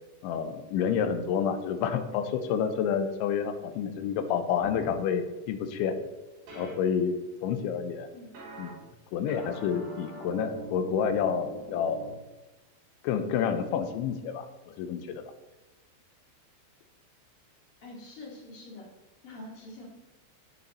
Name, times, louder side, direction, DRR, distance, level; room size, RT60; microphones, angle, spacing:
voice 1, 0.2-6.0 6.5-8.1 8.6-8.8 9.1-12.1 13.0-15.2, left 7 dB, 85° left, 8 dB, 3.1 m, -29 dB
sound 1, 4.6-5.0 6.5-6.7 8.3-8.7 9.3-12.1, right 1 dB, 60° right, 4.5 m, -41 dB
voice 2, 17.8-18.9 19.2-19.9, left 2 dB, 45° left, -3 dB, 2.0 m, -45 dB
16.0 x 5.7 x 4.0 m, 1.1 s
omnidirectional pair, 5.3 m